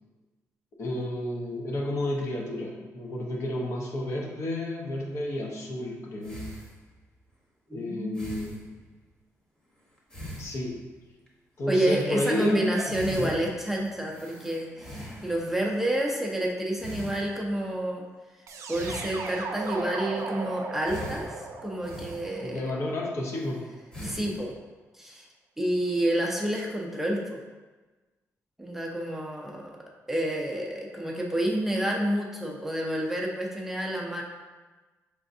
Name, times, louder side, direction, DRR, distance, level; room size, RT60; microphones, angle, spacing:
voice 1, 0.8-6.5 7.7-8.6 10.4-10.8 11.6-13.3 22.4-23.6, left 1 dB, 55° left, -1 dB, 0.8 m, -31 dB
sound 1, 5.1-5.2 6.2-7.2 8.1-8.9 10.0-11.3 11.8-12.0 12.6-12.7 12.9-15.7 16.8-17.7 18.7-19.6 20.8-22.7 23.3-23.6 23.9-24.5, equal, 15° left, 0.9 m, -42 dB
voice 2, 7.7-8.2 11.7-18.0 18.7-22.7 24.0-24.5 24.9-25.3 25.6-27.4 28.6-29.7 30.1-34.2, right 1 dB, 5° right, -2 dB, 0.5 m, -29 dB
sound 2, 18.5-23.4, right 3 dB, 65° right, 0.5 m, -37 dB
5.0 x 3.4 x 2.6 m, 1.3 s
cardioid pair, 135°, 6 cm